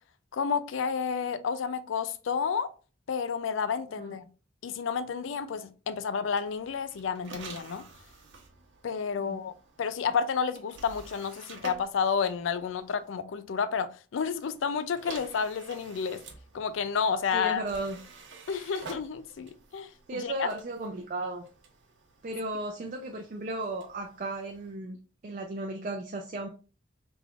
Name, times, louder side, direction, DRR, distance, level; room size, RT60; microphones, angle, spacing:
voice 1, 0.3-2.7 3.1-4.3 4.6-7.9 8.8-16.2 16.5-17.6 18.5-20.5, left 6 dB, 85° left, 0.4 m, -30 dB
sound 1, 6.2-13.2 14.2-24.8, right 3 dB, 80° right, 0.8 m, -50 dB
voice 2, 17.3-18.0 20.1-21.4 22.2-26.5, right 2 dB, 45° right, 0.4 m, -35 dB
3.5 x 3.4 x 2.4 m
head